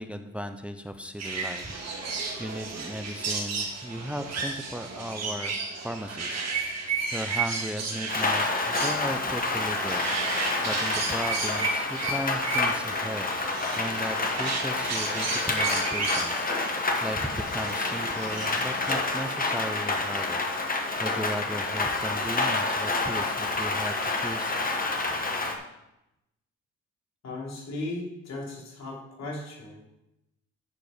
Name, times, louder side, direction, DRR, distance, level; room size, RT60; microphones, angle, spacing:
voice 1, 0.0-1.8 2.4-5.5 5.8-6.4 7.1-24.6, equal, 5° right, 8 dB, 0.6 m, -36 dB
sound 1, 1.2-18.9, right 4 dB, 60° right, 2.1 m, -33 dB
Rain, 8.1-25.6, left 3 dB, 30° left, 1.3 m, -28 dB
voice 2, 27.2-29.8, left 2 dB, 60° left, -2 dB, 3.0 m, -36 dB
10.5 x 5.0 x 5.0 m, 0.91 s
cardioid pair, 90°, 30 cm